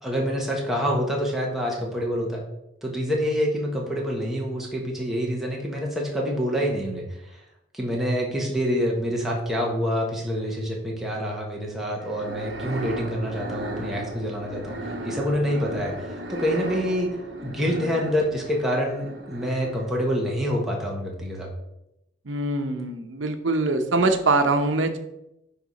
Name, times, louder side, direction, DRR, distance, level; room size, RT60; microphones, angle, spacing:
voice 1, 0.0-2.4 2.8-7.4 7.7-21.5, equal, ahead, -3 dB, 1.3 m, -27 dB
sound 1, 12.0-20.0, right 1 dB, 60° right, 1.2 m, -36 dB
voice 2, 22.3-25.0, right 2 dB, 80° right, 7 dB, 0.8 m, -23 dB
9.7 x 3.6 x 4.1 m, 0.86 s
head